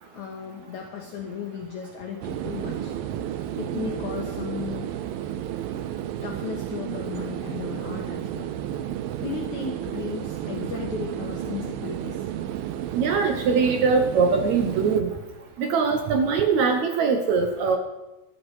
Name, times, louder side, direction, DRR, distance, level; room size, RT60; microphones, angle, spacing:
voice 1, 0.1-2.9 3.6-4.9 6.2-8.5 9.2-12.3, left 7 dB, 65° left, 1 dB, 2.3 m, -35 dB
sound 1, 2.2-15.0, right 11 dB, 85° right, 2.4 m, -32 dB
voice 2, 13.0-15.1 15.6-17.8, right 5 dB, 65° right, 6 dB, 2.0 m, -22 dB
15.0 x 12.0 x 4.9 m, 1.0 s
omnidirectional pair, 4.1 m